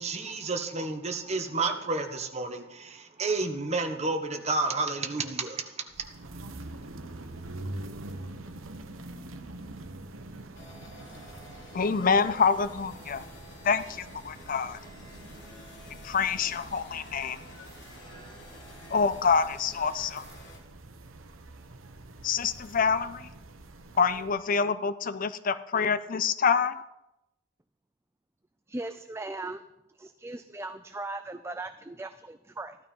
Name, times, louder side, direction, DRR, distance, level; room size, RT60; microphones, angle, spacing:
voice 1, 0.0-5.7 6.0-6.1, right 3 dB, 30° right, 6 dB, 1.3 m, -30 dB
sound 1, 5.9-24.4, right 2 dB, 85° right, 1.1 m, -45 dB
sound 2, 10.5-20.6, left 1 dB, 65° left, 2.9 m, -50 dB
voice 2, 11.7-13.2 13.6-14.8 16.0-17.4 18.9-20.2 22.2-23.3 24.0-26.8, left 5 dB, 40° left, 14 dB, 0.5 m, -26 dB
voice 3, 28.7-29.6 30.0-32.8, right 2 dB, 15° right, 9 dB, 0.4 m, -38 dB
15.0 x 12.0 x 5.4 m, 0.94 s
head